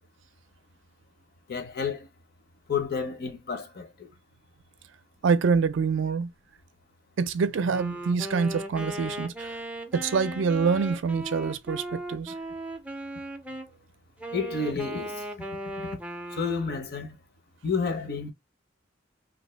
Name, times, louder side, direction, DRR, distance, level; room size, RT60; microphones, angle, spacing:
voice 1, 1.5-2.1 2.7-4.1 14.3-15.3 15.8-15.9 16.3-17.2 17.6-18.3, left 5 dB, 55° left, 0.7 m, -30 dB
voice 2, 5.2-6.3 7.2-9.6 9.9-12.3, right 5 dB, 70° right, 0.4 m, -26 dB
Wind instrument woodwind instrument, 7.5-13.7 14.2-16.8, right 1 dB, 10° right, 0.4 m, -37 dB
2.6 x 2.6 x 3.1 m
head